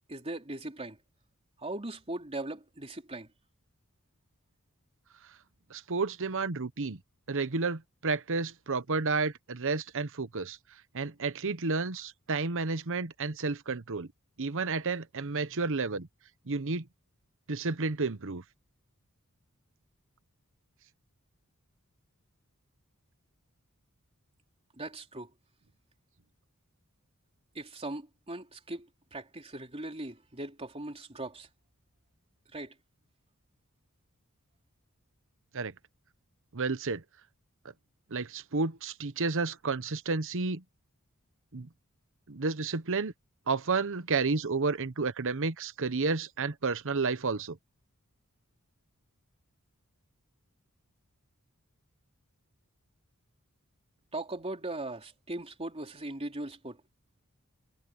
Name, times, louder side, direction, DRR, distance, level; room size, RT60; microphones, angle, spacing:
voice 1, 0.1-1.0 1.6-3.3 24.8-25.3 27.5-31.5 32.5-32.7 54.1-56.8, right 2 dB, 25° right, 3.3 m, -39 dB
voice 2, 5.7-7.0 7.3-10.6 10.9-14.1 14.4-16.1 16.5-16.9 17.5-18.4 35.5-35.7 36.5-37.0 38.1-40.6 41.5-41.7 42.3-43.1 43.5-47.6, right 4 dB, 60° right, 1.0 m, -31 dB
head